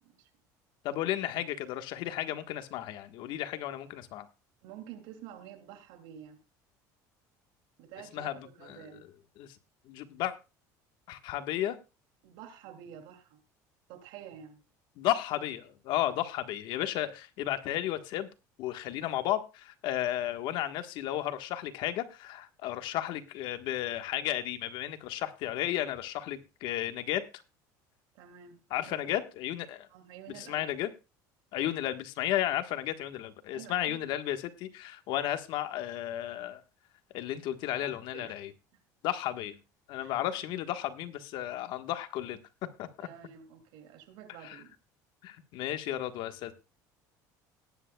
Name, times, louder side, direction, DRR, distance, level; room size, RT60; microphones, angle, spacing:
voice 1, 0.8-4.3 8.1-8.8 9.4-9.6 9.8-10.3 11.1-11.8 15.0-18.3 18.6-27.3 28.7-29.9 30.3-30.9 31.5-36.6 37.1-38.5 39.0-39.6 39.9-42.4 42.8-43.1 44.4-44.6 45.2-46.5, left 13 dB, 65° left, 1.4 m, -33 dB
voice 2, 4.6-6.4 7.8-9.0 12.2-13.4 13.9-14.6 16.1-16.2 28.1-28.6 28.9-29.1 29.9-30.7 33.5-34.0 37.8-38.3 40.0-40.2 43.0-44.8, right 9 dB, 75° right, 2.7 m, -49 dB
18.5 x 10.5 x 2.3 m
supercardioid pair, 110°, 9 cm